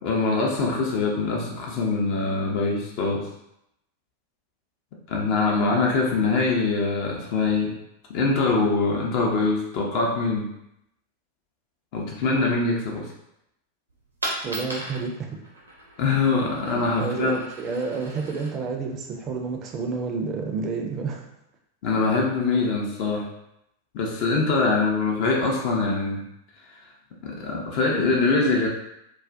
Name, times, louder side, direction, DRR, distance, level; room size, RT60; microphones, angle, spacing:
voice 1, 0.0-3.3 5.1-7.7 8.1-10.5 11.9-13.1 16.0-17.4 21.8-23.3 23.9-26.2 27.2-28.7, left 3 dB, 45° left, -1 dB, 0.4 m, -23 dB
Coin (dropping), 13.9-19.9, right 1 dB, 80° right, 0.7 m, -38 dB
voice 2, 14.4-15.3 17.0-21.3, right 4 dB, 30° right, 1 dB, 0.4 m, -29 dB
2.3 x 2.1 x 2.5 m, 0.81 s
figure-of-eight pair, 90°, 0 cm